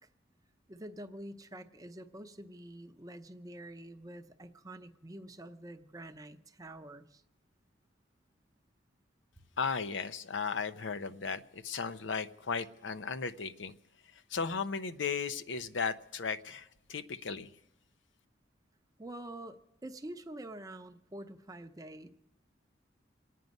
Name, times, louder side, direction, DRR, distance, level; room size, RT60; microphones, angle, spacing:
voice 1, 0.7-7.2 19.0-22.1, right 1 dB, 20° right, 8 dB, 0.6 m, -47 dB
voice 2, 9.6-13.7 14.0-17.6, left 5 dB, 80° left, 12 dB, 0.6 m, -36 dB
27.0 x 9.3 x 5.3 m, 0.85 s
head